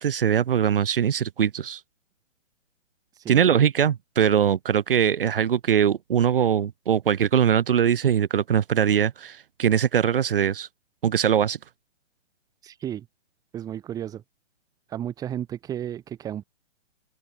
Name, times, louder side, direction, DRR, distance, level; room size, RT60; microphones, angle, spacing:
voice 1, 0.0-1.8 3.3-10.7 11.0-11.6, right 8 dB, 45° right, 2.9 m, -22 dB
voice 2, 3.1-3.5 12.6-13.1 13.5-14.2 14.9-16.4, right 10 dB, 10° right, 4.5 m, -33 dB
open air
hypercardioid pair, 170°, 38 cm